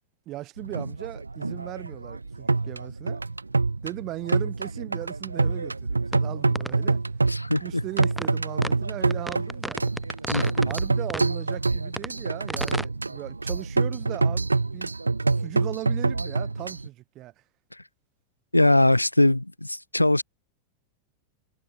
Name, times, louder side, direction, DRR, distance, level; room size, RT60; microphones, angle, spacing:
voice 1, 0.3-3.2 3.8-7.0 7.6-9.8 10.7-14.9 15.4-17.3, right 16 dB, 35° right, 2.8 m, -38 dB
sound 1, 0.6-16.9, right 3 dB, 80° right, 1.1 m, -27 dB
sound 2, 6.1-6.2 6.6-6.7 8.0-8.3 8.6-8.7 9.1-10.8 11.1-11.3 12.0-12.1 12.5-12.9, right 1 dB, 5° right, 0.4 m, -32 dB
voice 2, 7.3-7.8 10.3-10.7 18.5-20.2, left 1 dB, 85° left, 0.3 m, -21 dB
figure-of-eight pair, 90°, 0 cm